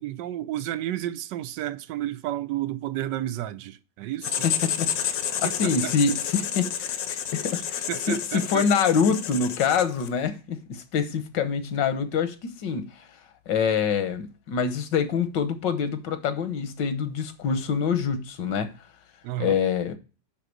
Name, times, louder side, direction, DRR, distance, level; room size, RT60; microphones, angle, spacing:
voice 1, 0.0-4.4 5.4-5.9 7.9-8.7 19.2-19.6, right 13 dB, 80° right, 1.2 m, -31 dB
Writing, 4.2-10.2, left 9 dB, 60° left, 1.1 m, -30 dB
voice 2, 4.4-12.9 13.5-18.7 19.4-20.0, left 6 dB, 80° left, 1.7 m, -26 dB
9.9 x 3.8 x 6.4 m
omnidirectional pair, 1.9 m